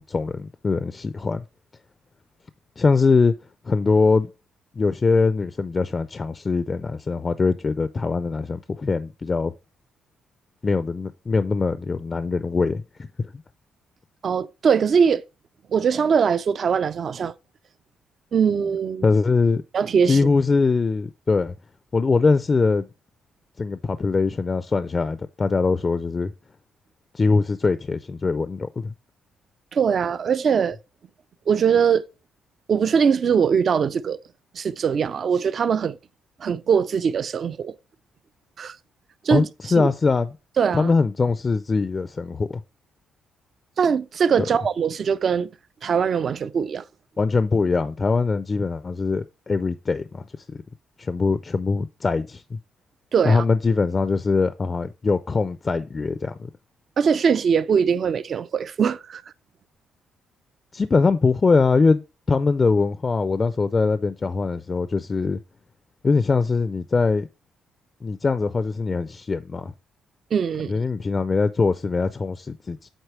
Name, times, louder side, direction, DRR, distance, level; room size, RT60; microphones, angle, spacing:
voice 1, 0.0-1.4 2.8-3.3 3.7-4.3 4.8-9.5 10.6-12.8 13.2-13.3 19.0-19.6 20.1-21.5 21.9-22.9 23.6-26.3 27.1-28.9 39.3-40.3 40.7-42.6 47.2-50.2 50.5-50.6 51.0-52.6 53.2-56.5 60.7-65.4 66.0-67.3 68.0-69.7 70.7-72.9, left 4 dB, 30° left, 0.4 m, -22 dB
voice 2, 14.2-15.2 15.7-17.3 18.3-19.1 19.7-20.2 29.7-30.8 31.5-32.0 32.7-34.2 34.5-36.0 36.4-37.8 38.6-38.8 39.2-39.5 39.8-39.9 40.6-40.9 43.8-45.5 45.8-46.8 53.1-53.4 57.0-59.2 70.3-70.8, right 6 dB, 50° right, 0.4 m, -21 dB
8.1 x 4.1 x 3.2 m
cardioid pair, 90°, 0 cm